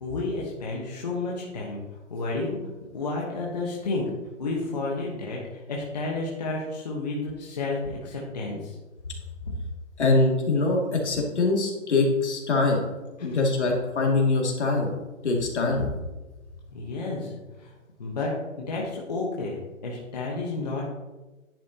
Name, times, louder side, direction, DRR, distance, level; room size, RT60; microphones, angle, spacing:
voice 1, 0.0-1.8 2.1-2.6 2.9-4.1 4.4-8.8 9.4-9.5 13.2-13.4 16.7-17.7 18.0-20.9, left 3 dB, 30° left, -4 dB, 1.1 m, -31 dB
voice 2, 10.0-12.8 13.2-14.9 15.2-15.8, left 3 dB, 60° left, -1 dB, 2.3 m, -23 dB
10.5 x 8.4 x 2.8 m, 1.2 s
hypercardioid pair, 175°, 39 cm